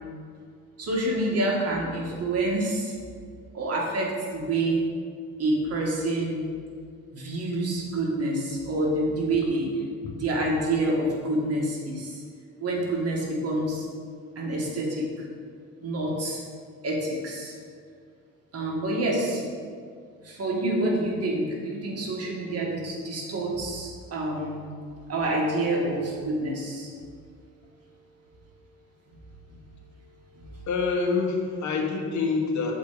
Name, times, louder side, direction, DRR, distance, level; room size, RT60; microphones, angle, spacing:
voice 1, 0.8-3.0 3.5-4.8 5.4-6.5 7.1-9.7 10.2-12.2 12.6-13.9 14.4-15.1 15.8-16.4 16.8-17.5 18.5-19.4 20.2-24.6 25.1-26.9 30.4-30.5, right 1 dB, 55° right, -2 dB, 1.8 m, -27 dB
voice 2, 30.7-32.7, left 4 dB, 70° left, 1 dB, 1.3 m, -26 dB
7.0 x 4.4 x 4.9 m, 2.1 s
cardioid pair, 90°, 30 cm